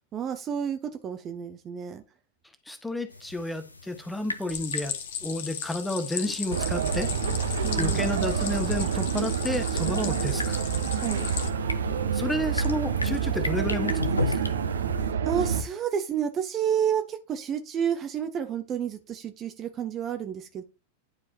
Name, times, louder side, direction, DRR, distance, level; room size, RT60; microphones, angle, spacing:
voice 1, 0.1-2.0 7.6-8.1 11.0-11.3 15.3-20.6, right 8 dB, 30° right, 7 dB, 0.8 m, -30 dB
voice 2, 2.7-4.9 5.2-7.1 7.8-10.6 12.1-14.4, left 1 dB, 5° left, 8 dB, 1.2 m, -31 dB
sound 1, 3.1-15.1, left 3 dB, 80° left, 0.8 m, -38 dB
Stream, 4.5-11.5, left 8 dB, 55° left, 1.3 m, -36 dB
sound 2, 6.5-15.6, right 6 dB, 65° right, 0.7 m, -27 dB
11.0 x 4.8 x 2.9 m, 0.29 s
figure-of-eight pair, 90°, 0 cm